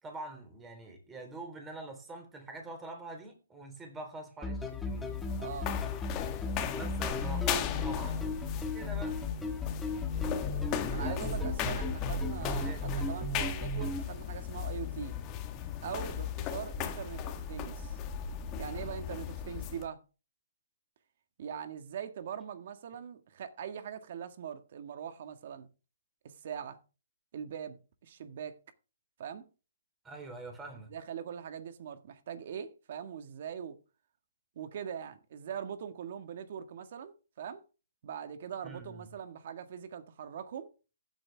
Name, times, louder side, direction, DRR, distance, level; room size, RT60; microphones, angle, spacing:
voice 1, 0.0-5.2 6.6-9.2 11.0-12.2 12.6-12.9 17.2-17.3 18.6-19.0 30.0-30.9 38.6-39.1, right 2 dB, 10° right, 3.7 m, -45 dB
sound 1, 4.4-14.0, left 2 dB, 5° left, 1.6 m, -35 dB
sound 2, 4.6-19.9, left 9 dB, 25° left, 1.5 m, -37 dB
voice 2, 5.4-5.7 10.9-15.2 15.8-18.0 18.6-20.0 21.4-25.7 26.2-26.8 27.3-28.6 29.2-29.4 30.9-33.8 34.6-37.6 38.0-40.7, right 8 dB, 55° right, 1.7 m, -42 dB
15.0 x 8.7 x 3.5 m
hypercardioid pair, 150°, 0 cm